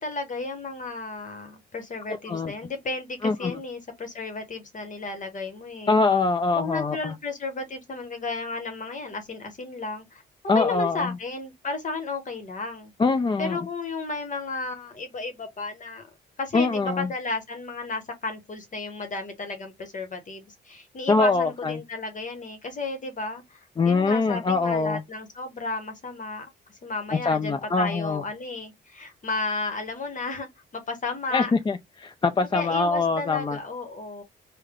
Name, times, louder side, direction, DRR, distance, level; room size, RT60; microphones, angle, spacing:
voice 1, 0.0-6.0 6.6-10.2 10.5-12.9 13.4-16.0 16.4-26.5 26.8-31.5 32.4-34.2, left 3 dB, 40° left, 1.0 m, -33 dB
voice 2, 2.1-2.5 3.2-3.6 5.9-7.1 10.5-11.1 13.0-13.6 16.5-17.1 21.1-21.7 23.8-25.0 27.2-28.2 31.3-33.6, left 3 dB, 25° left, 0.4 m, -23 dB
3.2 x 2.2 x 3.6 m
cardioid pair, 90°, 20 cm